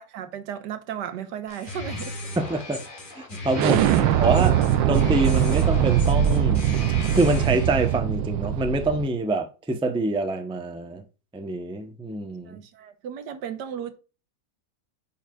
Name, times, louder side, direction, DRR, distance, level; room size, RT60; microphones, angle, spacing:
voice 1, 0.0-2.2 12.5-14.0, right 9 dB, 70° right, 1.5 m, -35 dB
sound 1, 1.5-8.0, left 2 dB, 30° left, 1.5 m, -37 dB
voice 2, 2.4-2.8 3.4-4.6 4.9-6.7 7.1-11.0 11.3-12.6, right 2 dB, 5° right, 0.4 m, -25 dB
Explosion, 3.5-9.1, right 10 dB, 90° right, 1.3 m, -21 dB
8.9 x 5.7 x 2.4 m
omnidirectional pair, 2.0 m